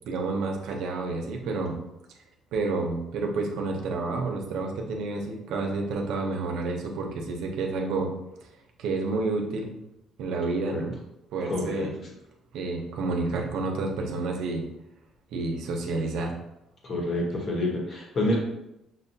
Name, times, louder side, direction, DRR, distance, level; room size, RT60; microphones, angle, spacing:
voice 1, 0.0-1.8 2.5-8.1 8.8-9.7 10.2-10.9 11.3-11.9 12.5-14.7 15.3-16.3, right 3 dB, 80° right, 1 dB, 0.7 m, -29 dB
voice 2, 11.5-11.9 16.8-18.4, left 1 dB, 40° left, -1 dB, 1.1 m, -28 dB
5.8 x 2.2 x 2.7 m, 0.86 s
cardioid pair, 135°, 0 cm